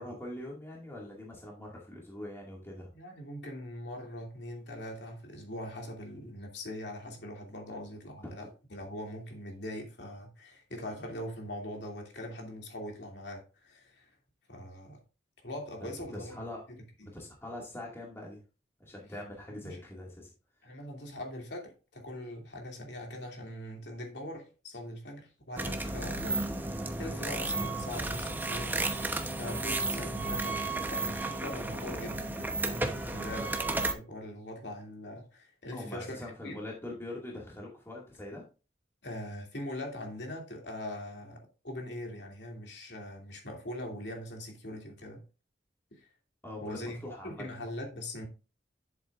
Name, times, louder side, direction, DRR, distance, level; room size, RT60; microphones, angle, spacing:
voice 1, 0.0-2.9 7.7-7.8 15.8-16.6 17.0-18.4 18.8-20.3 33.3-33.5 35.7-38.4 46.4-47.4, left 1 dB, 15° left, 2.1 m, -43 dB
voice 2, 2.9-14.1 14.5-15.0 15.4-16.4 16.7-17.1 19.5-19.8 20.6-26.4 27.0-28.8 29.4-33.5 33.9-36.2 36.4-36.6 39.0-45.2 45.9-46.0 46.6-48.3, left 1 dB, 75° left, 2.7 m, -42 dB
sound 1, 25.6-33.9, right 2 dB, 10° right, 0.9 m, -33 dB
10.5 x 7.5 x 2.5 m
head